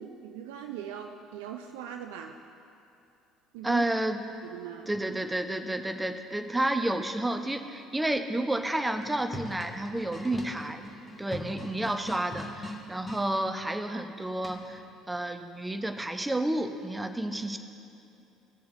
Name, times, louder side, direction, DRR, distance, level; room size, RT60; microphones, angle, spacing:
voice 1, 0.0-2.4 3.5-3.9 4.4-5.0, right 9 dB, 70° right, 5 dB, 0.4 m, -40 dB
voice 2, 3.6-4.2 4.9-10.9 11.2-17.6, right 1 dB, 10° right, 7 dB, 0.7 m, -30 dB
sound 1, 8.9-13.3 14.4-14.9, left 1 dB, 20° left, 1.4 m, -41 dB
18.0 x 6.9 x 2.6 m, 2.8 s
figure-of-eight pair, 55°, 0 cm